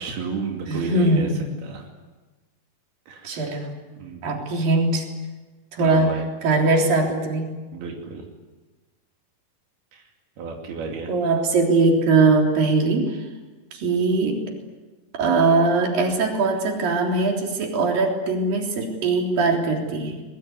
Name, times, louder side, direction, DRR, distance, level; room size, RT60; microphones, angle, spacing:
voice 1, 0.0-1.3 1.6-1.9 3.1-3.5 3.9-4.2 5.8-6.2 7.7-8.3 9.9-10.1 10.4-11.1, right 5 dB, 90° right, 1 dB, 4.7 m, -32 dB
voice 2, 0.7-1.5 3.2-3.7 4.2-5.1 5.7-6.1 6.4-7.5 11.1-13.3 13.7-14.4 15.1-20.2, right 3 dB, 65° right, 1 dB, 5.3 m, -21 dB
24.5 x 21.5 x 9.6 m, 1.2 s
omnidirectional pair, 4.3 m